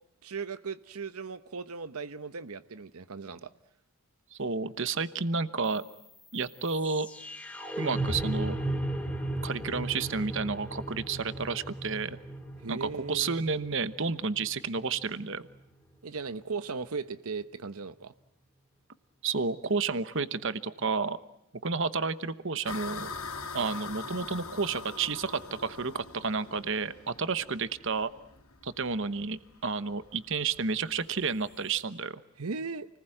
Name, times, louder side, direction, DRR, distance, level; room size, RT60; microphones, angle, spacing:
voice 1, 0.2-3.5 12.6-13.5 16.0-18.1 32.4-32.9, right 4 dB, 85° right, 13 dB, 0.9 m, -37 dB
voice 2, 4.3-5.8 6.3-7.1 7.8-8.6 9.4-12.2 12.7-15.5 19.2-21.2 21.6-23.1 23.5-28.1 28.6-32.2, right 4 dB, 55° right, 14 dB, 1.1 m, -31 dB
sound 1, 5.7-15.7, right 1 dB, 5° left, 3.6 m, -36 dB
sound 2, 22.7-31.8, left 4 dB, 80° left, 3.6 m, -43 dB
29.5 x 20.0 x 9.1 m, 0.81 s
head